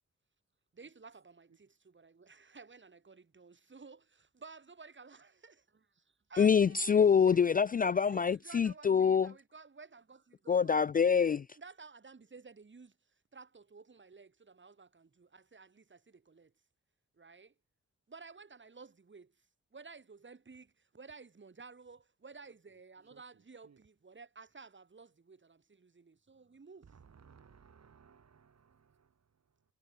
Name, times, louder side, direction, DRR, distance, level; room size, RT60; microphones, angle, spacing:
voice 1, 0.7-7.4 8.0-10.7 11.5-13.0 13.3-16.5 17.1-17.5 18.1-19.3 19.7-26.9, right 4 dB, 40° right, 4.2 m, -54 dB
voice 2, 6.4-9.3 10.5-11.4, left 6 dB, 30° left, 0.3 m, -26 dB
voice 3, 23.1-23.8 26.8-29.6, right 6 dB, 60° right, 6.8 m, -62 dB
cardioid pair, 65°, 31 cm